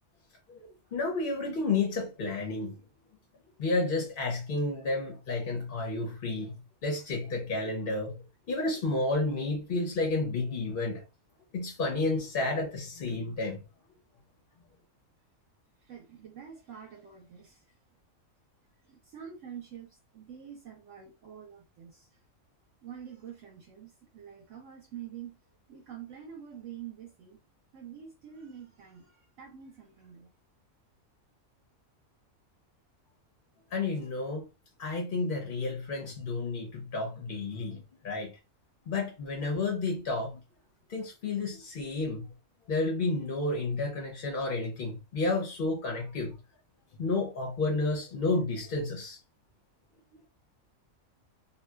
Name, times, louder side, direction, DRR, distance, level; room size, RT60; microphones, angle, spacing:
voice 1, 0.9-2.8 3.6-8.2 8.5-11.0 11.5-13.6 33.7-34.5 34.8-38.3 38.9-40.4 40.9-42.3 42.7-46.4 47.0-49.2, left 3 dB, 55° left, 0.6 m, -31 dB
voice 2, 15.8-17.8 18.8-22.1 22.8-25.4 25.7-27.4 27.7-30.3, right 8 dB, 70° right, 0.9 m, -46 dB
2.6 x 2.2 x 2.2 m
omnidirectional pair, 1.5 m